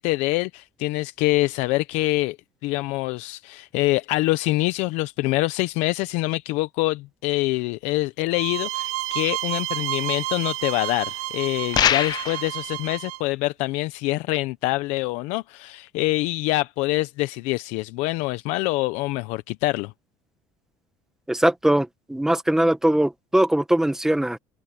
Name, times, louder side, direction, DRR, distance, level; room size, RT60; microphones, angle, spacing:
voice 1, 0.0-2.4 2.6-19.9, left 20 dB, 80° left, 0.7 m, -25 dB
sound 1, 8.3-13.2, right 16 dB, 80° right, 1.5 m, -30 dB
sound 2, 11.7-12.5, left 10 dB, 35° left, 0.5 m, -21 dB
voice 2, 21.3-24.4, right 1 dB, 5° right, 1.4 m, -21 dB
open air
cardioid pair, 145°, 12 cm